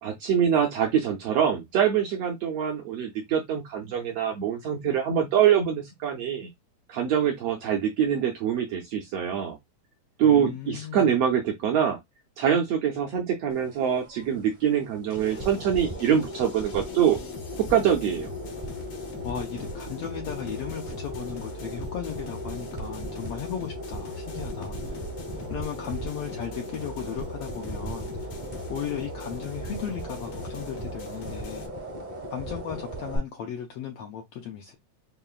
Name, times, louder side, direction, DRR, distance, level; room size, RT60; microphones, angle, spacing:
voice 1, 0.0-6.5 6.9-9.6 10.2-12.0 12.4-17.2 17.7-18.3, right 8 dB, 75° right, 1.4 m, -24 dB
voice 2, 10.2-11.2 19.2-25.0 25.5-28.3 28.7-31.9 32.3-34.8, left 8 dB, 80° left, 1.4 m, -36 dB
sound 1, 13.5-33.2, equal, 45° right, 0.5 m, -37 dB
sound 2, 15.1-31.7, left 1 dB, 65° left, 1.3 m, -43 dB
5.2 x 2.9 x 2.3 m
omnidirectional pair, 3.5 m